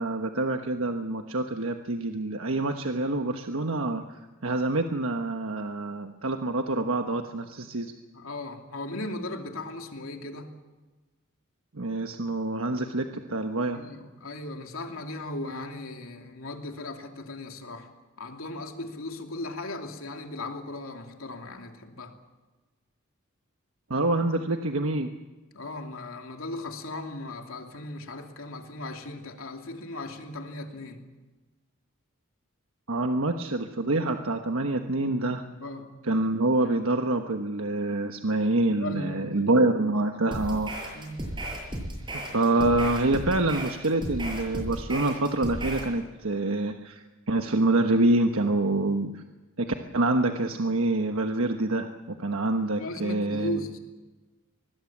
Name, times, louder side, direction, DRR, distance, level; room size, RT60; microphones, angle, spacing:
voice 1, 0.0-7.9 11.7-13.8 23.9-25.1 32.9-35.4 36.1-40.7 42.1-49.2 49.6-53.6, right 2 dB, 80° right, 5 dB, 1.2 m, -26 dB
voice 2, 8.1-10.5 13.7-17.9 18.2-22.1 25.5-31.1 35.5-35.9 38.7-39.3 40.9-41.3 48.7-48.9 52.8-53.8, left 2 dB, 85° left, 3 dB, 2.9 m, -37 dB
sound 1, 40.3-45.9, right 1 dB, 25° right, 7.2 m, -35 dB
24.5 x 20.5 x 7.4 m, 1.2 s
head